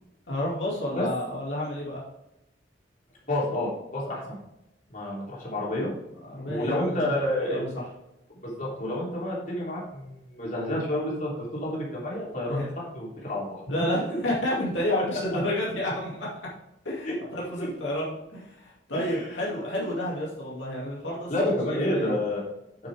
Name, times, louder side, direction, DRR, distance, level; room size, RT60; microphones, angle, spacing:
voice 1, 0.3-2.0 6.3-7.1 7.4-7.7 12.5-12.6 13.7-16.3 16.8-22.2, left 1 dB, 85° left, -5 dB, 2.3 m, -30 dB
voice 2, 3.3-4.4 4.9-5.9 6.4-7.6 8.4-13.5 17.0-17.1 17.6-17.7 19.0-19.5 19.8-19.9 21.3-22.4, left 1 dB, 45° left, -5 dB, 3.2 m, -29 dB
8.9 x 6.1 x 3.4 m, 0.87 s
head